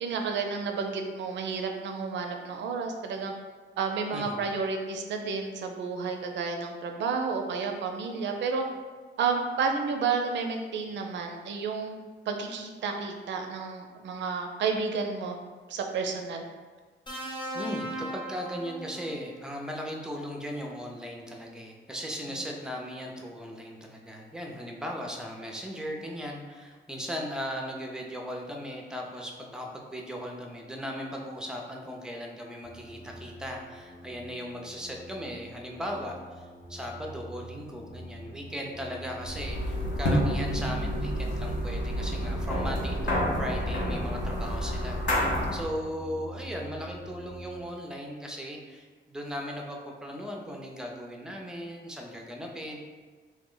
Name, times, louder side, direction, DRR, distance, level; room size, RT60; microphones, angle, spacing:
voice 1, 0.0-3.3 3.8-8.6 9.2-12.0 12.3-15.4 15.7-16.4 45.4-45.6, right 5 dB, 65° right, 4 dB, 0.4 m, -31 dB
voice 2, 4.1-4.5 17.5-52.8, equal, 5° right, 0 dB, 0.4 m, -37 dB
sound 1, 17.1-19.3 20.6-20.8, right 1 dB, 25° left, 0.8 m, -37 dB
sound 2, 32.6-47.6, equal, 85° left, 1.3 m, -46 dB
sound 3, 39.2-45.7, equal, 65° left, 0.7 m, -29 dB
3.1 x 2.0 x 3.7 m, 1.4 s
cardioid pair, 115°, 20 cm